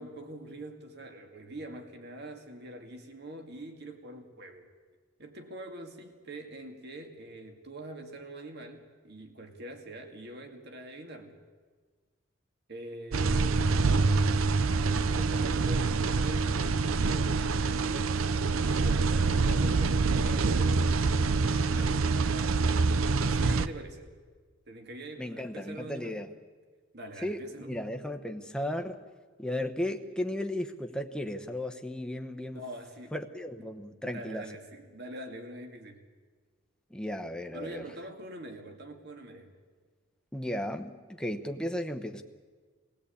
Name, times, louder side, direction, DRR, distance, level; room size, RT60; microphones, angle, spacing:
voice 1, 0.0-4.7 5.2-11.4 12.7-14.1 14.9-22.7 23.0-24.1 24.7-26.2 26.9-27.8 32.5-33.2 33.6-33.7 34.0-36.1 37.5-39.6, right 1 dB, 50° right, 4 dB, 2.2 m, -44 dB
sound 1, 13.1-23.7, right 4 dB, 80° right, 0.7 m, -26 dB
voice 2, 25.2-26.3 27.2-29.0 29.4-32.6 33.1-34.5 36.9-37.8 40.3-42.2, left 1 dB, 5° left, 5 dB, 1.0 m, -35 dB
23.0 x 16.5 x 8.5 m, 1.5 s
head